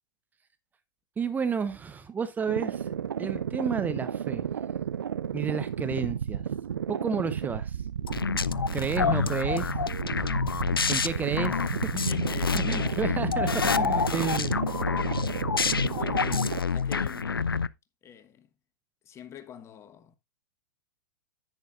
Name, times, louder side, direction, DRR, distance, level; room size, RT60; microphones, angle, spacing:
voice 1, 1.2-2.9 3.2-4.4 5.3-6.5 6.9-7.8 8.7-9.8 10.9-12.2 12.6-14.5, right 6 dB, 15° right, 0.9 m, -31 dB
sound 1, 2.5-16.6, right 8 dB, 70° right, 0.5 m, -33 dB
sound 2, 8.1-17.7, left 5 dB, 85° left, 0.5 m, -28 dB
voice 2, 9.0-9.4 10.8-11.1 11.9-13.1 15.8-17.6 18.0-18.5 19.0-20.2, left 9 dB, 25° left, 1.2 m, -46 dB
10.5 x 9.4 x 2.5 m
figure-of-eight pair, 105°, 12 cm